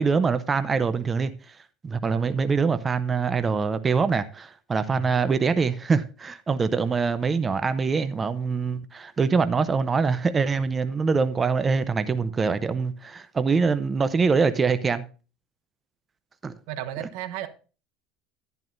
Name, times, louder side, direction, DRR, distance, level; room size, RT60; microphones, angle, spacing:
voice 1, 0.0-1.6 1.8-15.0 16.4-16.5, right 5 dB, 20° right, 0.6 m, -24 dB
voice 2, 16.7-17.5, right 10 dB, 75° right, 1.1 m, -35 dB
11.0 x 10.5 x 2.6 m
cardioid pair, 145°, 0 cm